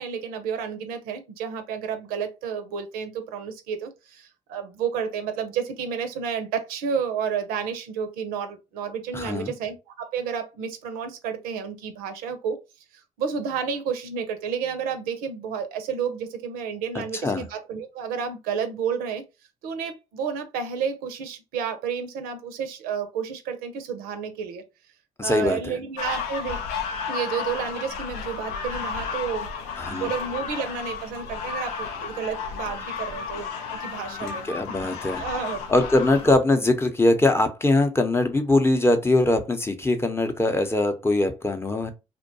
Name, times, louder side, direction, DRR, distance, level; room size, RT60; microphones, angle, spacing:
voice 1, 0.0-12.6 13.2-19.2 19.6-24.6 25.2-26.6 27.1-29.5 29.9-34.5 35.2-35.6, right 7 dB, 80° right, 0.5 m, -31 dB
voice 2, 9.1-9.5 17.2-17.4 25.2-25.8 29.8-30.1 34.2-35.2 35.7-41.9, left 2 dB, 15° left, 0.6 m, -22 dB
sound 1, 26.0-36.3, left 6 dB, 80° left, 0.5 m, -33 dB
2.6 x 2.2 x 2.6 m
hypercardioid pair, 55°, 15 cm